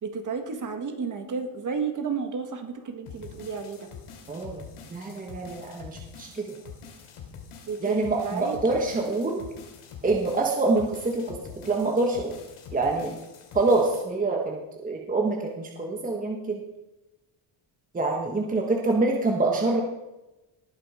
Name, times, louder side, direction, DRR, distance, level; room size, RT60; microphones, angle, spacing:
voice 1, 0.0-3.9 7.7-8.8, right 5 dB, 35° right, 5 dB, 1.8 m, -32 dB
sound 1, 3.1-14.0, left 6 dB, 75° left, 2.9 m, -45 dB
voice 2, 4.3-4.6 4.9-6.6 7.8-9.4 10.0-11.4 11.6-12.3 12.7-13.2 13.5-16.6 17.9-19.8, right 3 dB, 15° right, 0 dB, 1.3 m, -26 dB
19.0 x 7.5 x 5.0 m, 1.0 s
cardioid pair, 165°, 50 cm